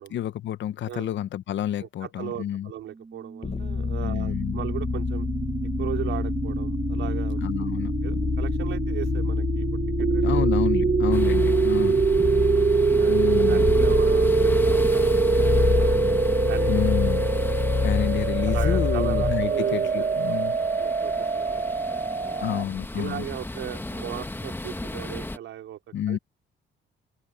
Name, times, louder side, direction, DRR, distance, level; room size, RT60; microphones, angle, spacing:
voice 1, 0.1-2.7 4.0-4.7 7.4-7.9 10.2-12.0 13.1-13.7 16.7-17.3 17.8-20.5 22.4-23.3 25.9-26.2, left 11 dB, 70° left, 1.0 m, -29 dB
voice 2, 1.8-5.3 5.8-7.7 8.0-10.5 11.0-11.4 13.0-13.2 13.5-16.1 16.5-16.8 17.2-17.9 18.5-21.6 21.9-22.4 23.0-25.8 26.1-26.2, right 12 dB, 80° right, 4.9 m, -37 dB
sound 1, 3.4-19.6, left 5 dB, 30° left, 1.3 m, -27 dB
sound 2, 3.5-22.6, right 5 dB, 30° right, 1.7 m, -24 dB
sound 3, 11.1-25.4, left 2 dB, 10° left, 1.5 m, -36 dB
open air
cardioid pair, 90°, 20 cm